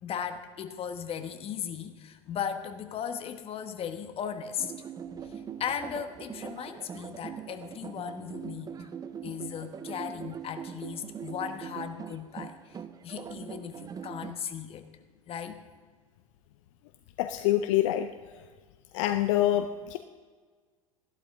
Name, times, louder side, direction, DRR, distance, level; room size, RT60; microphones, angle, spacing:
voice 1, 0.0-4.7 5.2-8.9 9.2-12.8 13.0-14.9 15.3-15.6, left 8 dB, 30° left, 8 dB, 1.2 m, -37 dB
sound 1, 4.6-14.3, right 8 dB, 20° right, 0.6 m, -42 dB
voice 2, 17.2-18.1 18.9-20.0, left 13 dB, 60° left, 9 dB, 0.6 m, -26 dB
14.5 x 12.0 x 3.7 m, 1.5 s
hypercardioid pair, 85°, 18 cm